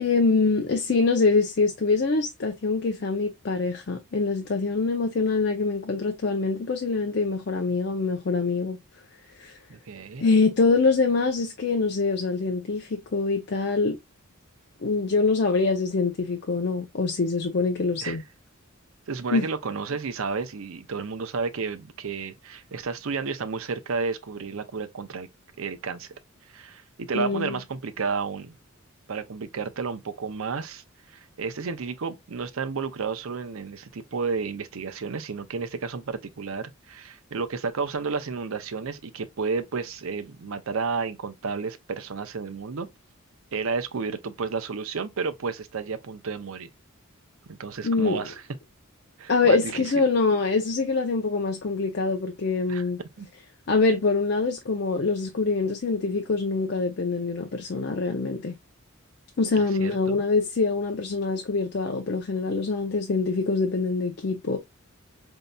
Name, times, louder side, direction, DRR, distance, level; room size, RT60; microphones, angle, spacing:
voice 1, 0.0-8.8 9.4-9.6 10.2-14.0 14.8-18.2 19.3-19.5 27.1-27.6 47.8-48.2 49.3-53.0 53.7-58.6 59.4-64.6, left 4 dB, 50° left, 0.5 m, -24 dB
voice 2, 9.7-10.3 18.0-18.2 19.1-25.3 25.6-26.1 26.5-28.6 29.1-42.9 43.5-46.7 47.5-48.4 49.2-50.1 52.7-53.3 59.6-60.2, right 5 dB, 65° right, 0.6 m, -32 dB
5.2 x 2.7 x 2.2 m
head